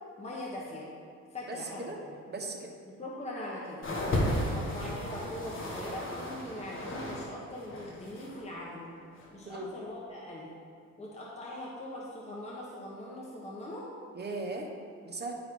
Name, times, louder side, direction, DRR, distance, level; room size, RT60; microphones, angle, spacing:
voice 1, 0.2-0.9 1.3-2.1 3.0-3.9 4.3-8.9 9.3-10.5 11.0-13.9, left 1 dB, 20° left, -5 dB, 1.4 m, -41 dB
voice 2, 1.5-2.0 2.3-2.7 9.4-9.7 14.1-14.7 15.0-15.3, right 2 dB, 35° right, 1 dB, 1.3 m, -37 dB
sound 1, 3.8-7.3 7.5-8.4 9.2-9.3, left 1 dB, 45° left, 1.7 m, -34 dB
11.0 x 4.6 x 3.8 m, 2.3 s
cardioid pair, 90°, 30 cm